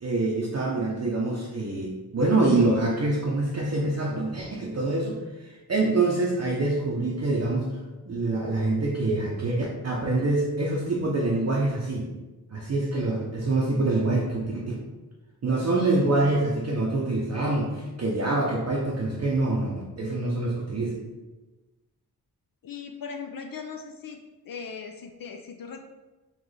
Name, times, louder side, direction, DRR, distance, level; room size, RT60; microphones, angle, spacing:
voice 1, 0.0-7.7 8.1-12.1 12.5-14.6 15.4-21.0, right 2 dB, 40° right, -4 dB, 0.6 m, -25 dB
voice 2, 22.6-24.2 24.5-25.8, left 6 dB, 60° left, 4 dB, 0.5 m, -38 dB
3.9 x 3.0 x 3.2 m, 1.1 s
wide cardioid pair, 75°, 39 cm